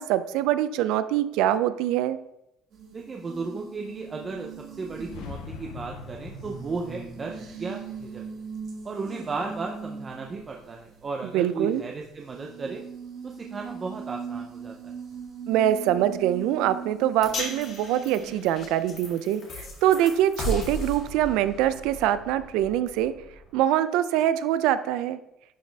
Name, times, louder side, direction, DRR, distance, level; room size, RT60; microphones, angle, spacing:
voice 1, 0.0-2.2 11.3-11.8 15.5-23.1 23.5-25.2, right 12 dB, 85° right, 13 dB, 0.4 m, -24 dB
sound 1, 2.7-19.0, right 6 dB, 50° right, 1.9 m, -41 dB
voice 2, 2.9-4.5 4.8-8.2 8.8-12.8 13.2-14.9, right 4 dB, 25° right, 1 dB, 0.6 m, -35 dB
sound 2, 4.4-9.5, left 6 dB, 75° left, 0.5 m, -45 dB
sound 3, 17.2-23.6, left 1 dB, 45° left, 2.1 m, -36 dB
11.0 x 4.1 x 3.4 m, 0.83 s
cardioid pair, 155°, 0 cm